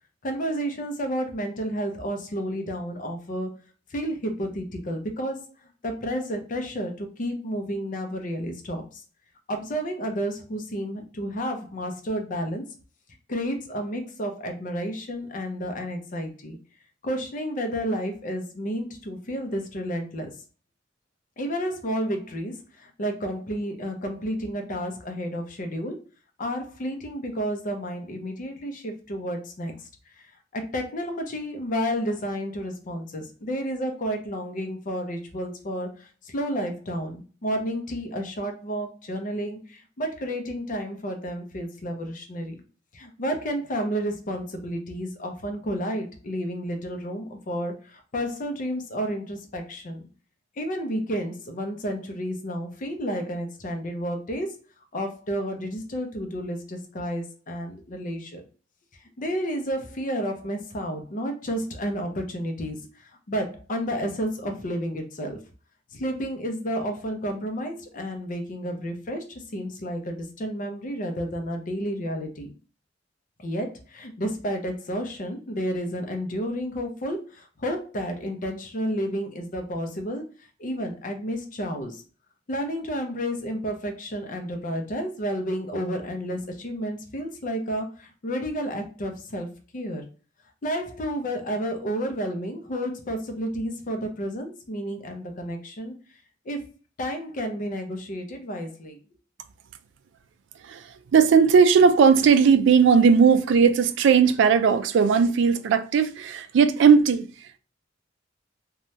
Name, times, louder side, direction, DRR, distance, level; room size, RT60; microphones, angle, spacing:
voice 1, 0.2-3.6 3.9-5.5 5.8-9.0 9.5-12.6 13.3-16.6 17.0-20.3 21.4-26.0 26.4-29.7 30.5-42.6 42.9-50.1 50.6-54.6 54.9-58.4 59.2-65.4 65.9-72.5 73.4-80.2 80.6-82.0 82.5-89.5 89.7-90.0 90.6-95.9 96.5-96.6 97.0-99.0, equal, 45° left, 0.6 m, -31 dB
voice 2, 100.6-107.6, right 6 dB, 65° right, 0.3 m, -18 dB
2.7 x 2.2 x 3.1 m
head